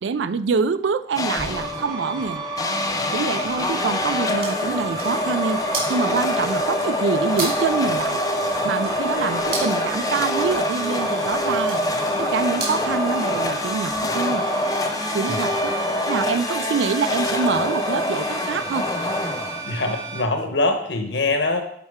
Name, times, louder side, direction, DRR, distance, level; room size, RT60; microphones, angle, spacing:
voice 1, 0.0-2.4 3.1-5.6 5.9-8.2 8.6-11.8 12.2-14.4 15.1-15.8 16.1-18.9, right 5 dB, 80° right, 14 dB, 0.4 m, -25 dB
sound 1, 1.2-1.8 2.6-19.9, left 1 dB, 20° left, 0.5 m, -25 dB
sound 2, 1.4-20.2, right 2 dB, 20° right, 0.8 m, -31 dB
sound 3, 4.1-12.9, right 3 dB, 50° right, 2.8 m, -36 dB
voice 2, 19.6-21.6, left 2 dB, 75° left, 5 dB, 1.0 m, -23 dB
11.0 x 4.3 x 3.6 m, 0.68 s
head